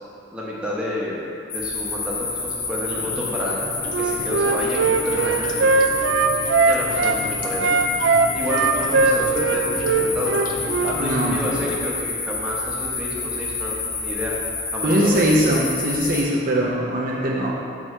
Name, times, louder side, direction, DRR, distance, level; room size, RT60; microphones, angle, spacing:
voice 1, 0.3-1.2 1.5-3.6 4.0-5.8 6.6-7.8 8.3-10.4 10.8-14.4 14.7-15.3, left 1 dB, 5° right, -7 dB, 0.9 m, -29 dB
sound 1, 1.5-16.2, left 4 dB, 85° left, 1.1 m, -29 dB
sound 2, 2.9-11.9, left 3 dB, 45° left, 0.5 m, -36 dB
Wind instrument woodwind instrument, 3.9-7.2 7.6-11.0, right 4 dB, 80° right, 0.4 m, -20 dB
voice 2, 11.0-11.4 14.8-17.5, right 1 dB, 50° right, -4 dB, 0.6 m, -21 dB
5.1 x 4.9 x 4.3 m, 2.6 s
head